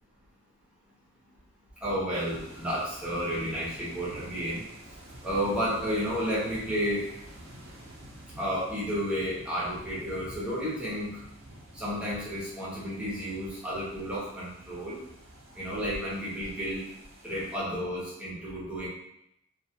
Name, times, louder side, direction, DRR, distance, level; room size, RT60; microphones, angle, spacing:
voice 1, 1.8-4.7 5.2-7.0 8.4-11.1 11.7-15.0 15.5-16.8 17.2-18.9, equal, 5° right, -9 dB, 0.8 m, -31 dB
sound 1, 2.1-17.6, right 1 dB, 70° right, 0.6 m, -49 dB
2.3 x 2.3 x 2.7 m, 0.79 s
head